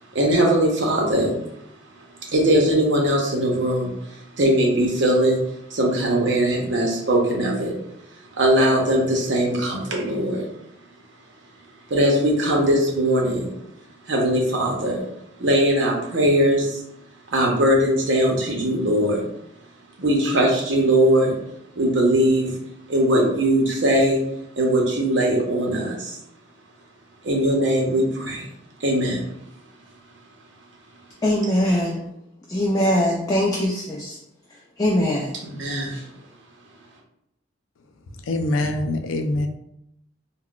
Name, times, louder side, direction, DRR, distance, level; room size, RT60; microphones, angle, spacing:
voice 1, 0.1-1.3 2.3-5.4 5.7-7.7 8.4-10.4 11.9-13.5 14.1-15.0 15.4-16.8 17.3-19.2 20.0-21.3 21.8-22.5 22.9-24.2 24.6-26.2 27.2-28.5 28.8-29.3 35.4-36.0, right 1 dB, 65° right, -1 dB, 0.8 m, -20 dB
voice 2, 31.2-32.1 32.5-34.2 34.8-35.4 35.9-36.0, left 1 dB, 20° left, -2 dB, 0.3 m, -22 dB
voice 3, 38.1-39.5, left 2 dB, 85° left, 5 dB, 0.4 m, -24 dB
3.7 x 2.2 x 2.3 m, 0.78 s
head